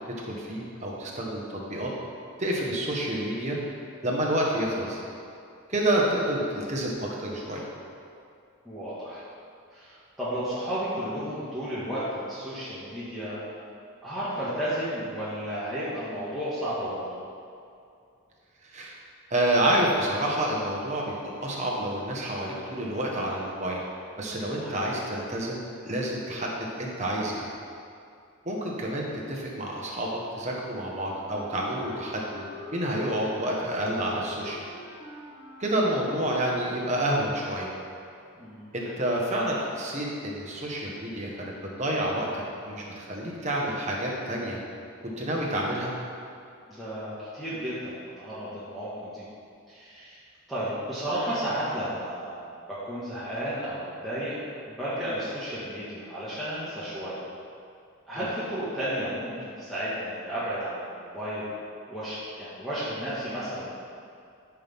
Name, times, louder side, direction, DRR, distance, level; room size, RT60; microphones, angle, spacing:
voice 1, 0.2-1.9 2.4-3.6 4.0-5.0 5.7-7.6 18.6-18.9 19.3-23.8 24.2-27.5 28.4-32.5 32.7-34.6 35.6-37.7 38.7-44.6 45.0-45.9 58.1-58.3, right 1 dB, 30° right, -3 dB, 1.4 m, -29 dB
voice 2, 8.6-9.2 9.7-13.4 14.0-17.0 24.6-25.0 38.3-38.7 46.7-49.3 49.7-50.2 50.5-54.4 54.7-57.2 58.1-61.5 61.9-63.7, equal, ahead, -12 dB, 1.7 m, -33 dB
Wind instrument woodwind instrument, 31.0-36.8, left 2 dB, 70° left, 2.4 m, -46 dB
13.5 x 5.9 x 3.7 m, 2.5 s
head